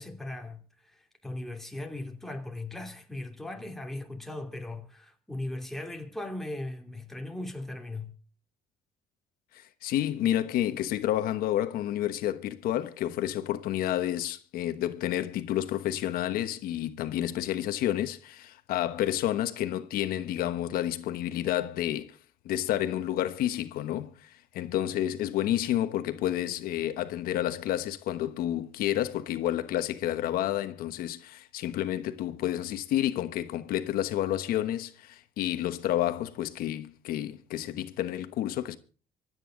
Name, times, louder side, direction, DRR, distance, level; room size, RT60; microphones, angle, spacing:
voice 1, 0.0-8.1, left 2 dB, ahead, 2.8 m, -38 dB
voice 2, 9.5-22.2 22.4-38.8, left 12 dB, 80° left, 1.2 m, -30 dB
25.5 x 9.3 x 3.8 m
cardioid pair, 150°, 15 cm